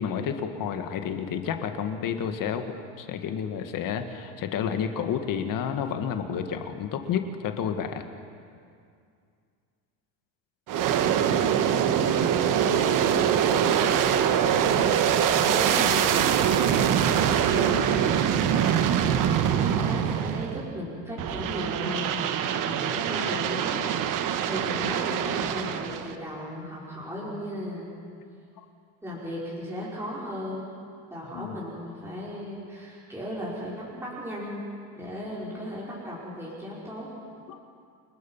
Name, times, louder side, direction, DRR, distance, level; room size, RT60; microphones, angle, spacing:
voice 1, 0.0-8.0 28.6-28.7 31.3-31.6 37.5-37.6, left 7 dB, 45° left, 7 dB, 1.8 m, -30 dB
voice 2, 10.7-23.8 24.1-27.9 29.0-30.7 31.1-34.7 34.9-37.1, equal, 5° right, -7 dB, 5.0 m, -36 dB
Aircraft, 10.7-20.7 21.2-26.1, right 9 dB, 45° right, 1.3 m, -24 dB
29.0 x 20.0 x 5.7 m, 2.3 s
supercardioid pair, 130°, 45 cm